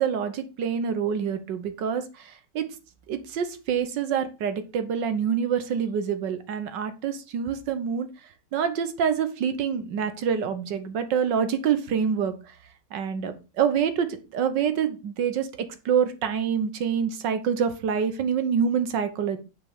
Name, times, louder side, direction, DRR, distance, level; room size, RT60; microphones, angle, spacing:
voice 1, 0.0-2.7 3.1-8.1 8.5-12.6 12.9-19.4, right 7 dB, 75° right, 10 dB, 1.8 m, -26 dB
7.7 x 6.0 x 5.0 m, 0.30 s
omnidirectional pair, 2.0 m